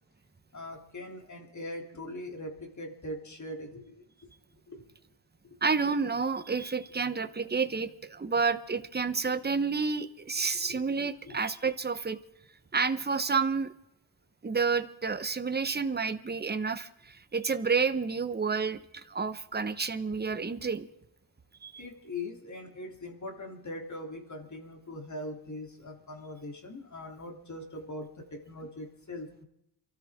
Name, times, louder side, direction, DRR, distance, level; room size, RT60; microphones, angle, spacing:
voice 1, 0.5-4.3 4.7-4.8 10.6-10.8 11.2-11.4 21.8-29.5, left 1 dB, 45° left, 2 dB, 3.3 m, -41 dB
voice 2, 5.6-12.2 12.7-13.7 14.4-20.9 21.6-21.8, right 5 dB, 25° right, 9 dB, 1.1 m, -30 dB
28.5 x 13.5 x 3.7 m, 0.80 s
wide cardioid pair, 105°, 42 cm